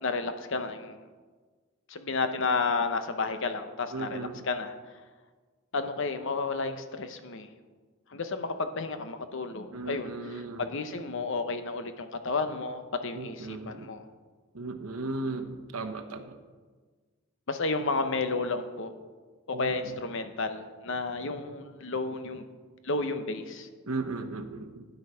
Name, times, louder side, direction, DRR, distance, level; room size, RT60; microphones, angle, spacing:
voice 1, 0.0-1.0 1.9-4.7 5.7-7.5 8.1-14.1 17.5-18.9 19.5-22.5 22.8-23.7, left 3 dB, 60° left, 9 dB, 0.9 m, -32 dB
voice 2, 3.9-4.4 9.7-10.6 13.2-13.9 14.5-16.4 19.5-19.7 23.9-24.9, right 3 dB, 85° right, 7 dB, 1.0 m, -36 dB
11.0 x 7.9 x 5.6 m, 1.4 s
head